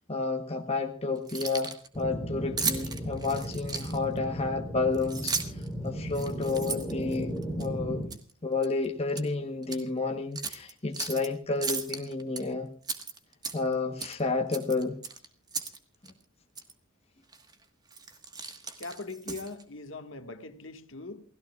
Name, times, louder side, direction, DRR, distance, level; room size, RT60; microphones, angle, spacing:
voice 1, 0.1-5.3 5.8-8.1 8.4-12.7 13.5-15.0, left 3 dB, 30° left, 1.0 m, -30 dB
Keys jangling, 1.2-1.9 2.6-4.2 4.9-5.7 6.1-7.7 8.1-8.3 8.6-9.3 9.6-9.8 10.3-11.3 11.6-12.4 12.8-13.7 14.0-14.2 14.5-15.8 16.0-16.1 16.5-16.7 17.3-17.5 17.9-19.6, right 5 dB, 20° right, 1.4 m, -35 dB
sound 1, 1.9-8.1, right 1 dB, ahead, 3.4 m, -36 dB
voice 2, 18.8-21.2, left 3 dB, 65° left, 1.6 m, -41 dB
28.5 x 17.0 x 2.3 m
head